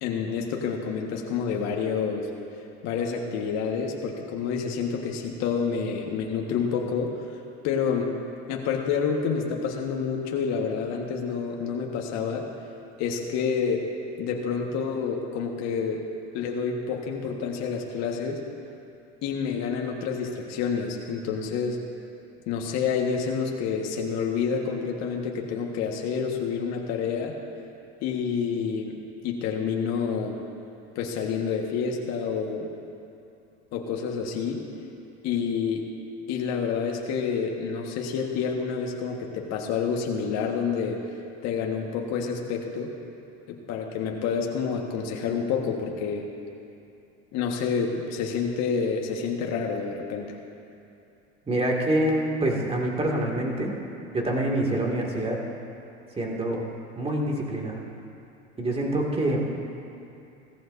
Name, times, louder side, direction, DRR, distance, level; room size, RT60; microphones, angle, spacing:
voice 1, 0.0-2.3 2.8-7.4 7.6-8.1 8.5-12.5 13.0-13.9 14.2-16.0 16.3-18.4 19.2-21.8 22.5-27.4 28.0-29.0 29.2-30.4 30.9-32.7 33.7-34.6 35.2-35.9 36.3-41.0 41.4-42.9 43.5-46.3 47.3-50.4, left 6 dB, 55° left, 1 dB, 1.6 m, -28 dB
voice 2, 51.5-53.8 54.1-55.4 56.2-56.6 56.9-57.8 58.6-59.4, right 1 dB, 20° right, -1 dB, 2.3 m, -26 dB
16.5 x 14.5 x 2.7 m, 2.7 s
hypercardioid pair, 95°, 32 cm